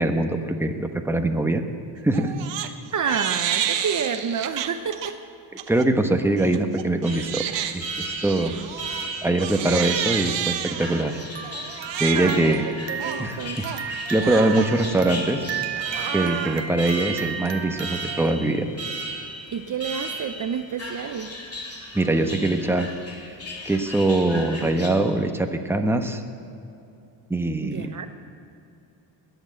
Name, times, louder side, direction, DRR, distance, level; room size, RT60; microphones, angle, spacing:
voice 1, 0.0-1.6 2.0-2.3 5.7-7.4 7.7-8.6 9.2-11.2 12.0-12.6 13.2-15.4 16.1-18.7 21.9-22.9 23.2-23.3 23.6-26.2 27.3-28.1, right 2 dB, 5° right, 5 dB, 1.1 m, -23 dB
Crying sobbing, 2.1-2.7 3.1-5.1 5.6-5.9 6.4-18.3, right 9 dB, 65° right, 1.1 m, -31 dB
voice 2, 2.9-5.2 12.1-13.6 19.5-21.3 27.6-28.1, right 6 dB, 40° right, 7 dB, 0.8 m, -29 dB
Alarm, 7.0-24.9, right 1 dB, 30° left, 3.2 m, -36 dB
21.5 x 8.1 x 7.8 m, 2.7 s
cardioid pair, 100°, 46 cm